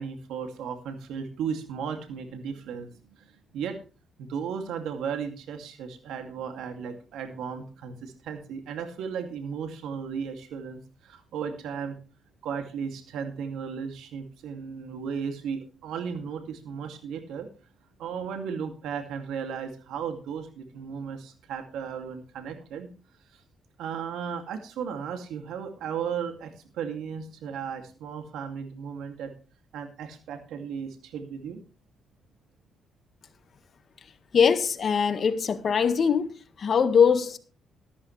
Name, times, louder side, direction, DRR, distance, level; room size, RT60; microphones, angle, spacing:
voice 1, 0.0-3.8 4.2-12.0 12.4-17.5 18.0-22.9 23.3-23.4 23.8-29.3 29.7-31.6, right 7 dB, 85° right, 2.3 m, -35 dB
voice 2, 34.3-36.3 36.6-37.4, left 6 dB, 50° left, 1.6 m, -22 dB
13.5 x 12.5 x 3.2 m
cardioid pair, 90°, 0 cm